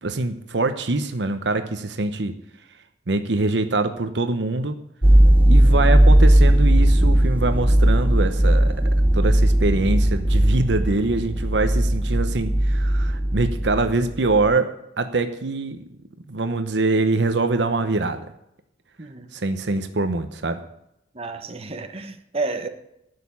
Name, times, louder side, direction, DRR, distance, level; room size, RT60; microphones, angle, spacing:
voice 1, 0.0-2.3 3.1-4.8 5.5-8.7 9.1-15.8 16.3-18.3 19.3-20.6, right 3 dB, 70° right, 9 dB, 0.9 m, -24 dB
sound 1, 5.0-14.0 14.3-14.5, right 1 dB, 10° right, 0.4 m, -17 dB
voice 2, 19.0-19.3 21.1-22.7, right 3 dB, 35° right, 6 dB, 1.1 m, -31 dB
11.5 x 6.7 x 8.4 m, 0.80 s
head